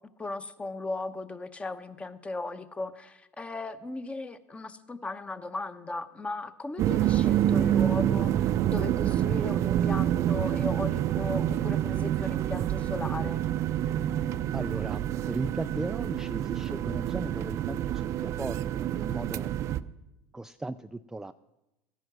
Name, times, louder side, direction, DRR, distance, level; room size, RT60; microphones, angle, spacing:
voice 1, 0.2-13.5, left 3 dB, 20° left, 11 dB, 1.0 m, -37 dB
sound 1, 6.8-19.8, right 11 dB, 50° right, 0.6 m, -27 dB
voice 2, 14.5-19.5 20.3-21.3, right 2 dB, 10° right, 10 dB, 0.4 m, -37 dB
14.5 x 10.5 x 6.1 m, 0.96 s
hypercardioid pair, 90°, 7 cm